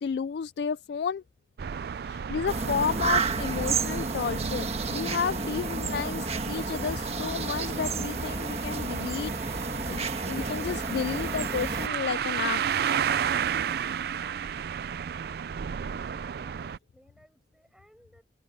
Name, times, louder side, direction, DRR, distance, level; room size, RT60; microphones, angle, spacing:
voice 1, 0.0-1.2 2.0-12.6 13.1-13.3 13.8-14.0 15.8-15.9, left 6 dB, 60° left, 0.3 m, -32 dB
sound 1, 1.6-16.8, right 7 dB, 55° right, 0.3 m, -33 dB
sound 2, 2.5-11.9, right 4 dB, 35° right, 1.4 m, -31 dB
voice 2, 15.9-18.2, equal, 5° right, 7.8 m, -61 dB
head